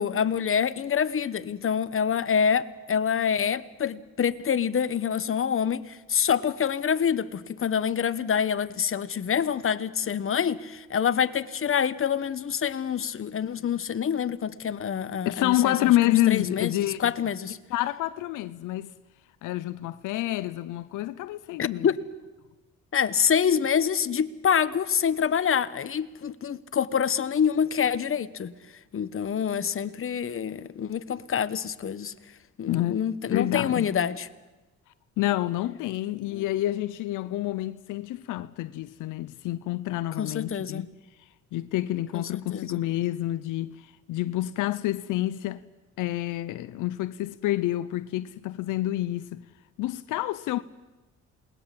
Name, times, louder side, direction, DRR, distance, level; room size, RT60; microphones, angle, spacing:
voice 1, 0.0-15.9 16.3-16.7 17.0-17.6 21.6-22.0 22.9-28.5 28.9-32.1 32.6-34.3 36.3-36.5 40.2-40.9 42.1-42.8, left 7 dB, 45° left, 1.2 m, -26 dB
voice 2, 15.2-17.1 17.7-18.9 19.4-21.9 32.7-32.9 33.3-33.9 35.2-40.9 41.5-45.6 46.0-49.4 49.8-50.6, left 15 dB, 90° left, 0.7 m, -28 dB
28.0 x 20.5 x 7.6 m
cardioid pair, 90°, 30 cm